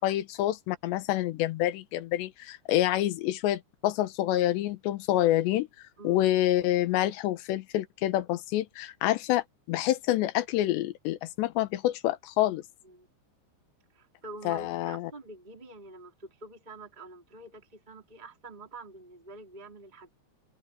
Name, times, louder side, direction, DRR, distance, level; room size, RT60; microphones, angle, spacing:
voice 1, 0.0-5.7 6.0-12.6 14.4-15.1, left 14 dB, 75° left, 3.3 m, -27 dB
voice 2, 13.9-20.1, right 2 dB, 10° right, 3.3 m, -46 dB
open air
omnidirectional pair, 5.2 m